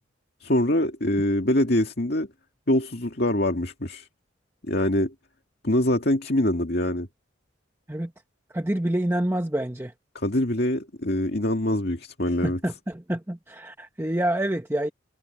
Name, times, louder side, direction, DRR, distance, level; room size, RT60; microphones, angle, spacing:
voice 1, 0.4-2.3 2.7-4.1 4.6-5.1 5.6-7.1 10.1-12.6, left 1 dB, 50° left, 2.2 m, -24 dB
voice 2, 8.5-9.9 12.4-14.9, right 1 dB, 10° right, 1.0 m, -27 dB
head